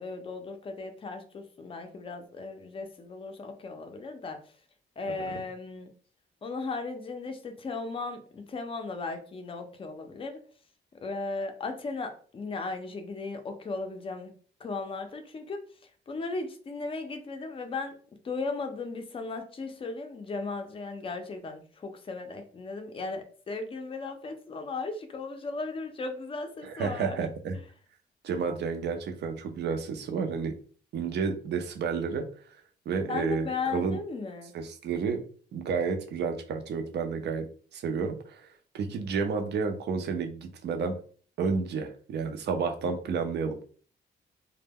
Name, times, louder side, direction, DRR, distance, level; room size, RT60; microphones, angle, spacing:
voice 1, 0.0-4.4 5.0-5.9 6.4-10.4 11.0-14.3 14.6-18.0 18.2-27.2 33.1-34.5, left 3 dB, 30° left, 6 dB, 0.4 m, -36 dB
voice 2, 26.6-27.5 28.2-30.5 30.9-32.2 32.9-34.0 34.5-35.2 35.5-37.4 37.7-38.5 38.7-41.0 41.4-43.5, right 5 dB, 65° right, 5 dB, 0.5 m, -31 dB
2.1 x 2.1 x 3.4 m, 0.43 s
cardioid pair, 140°, 19 cm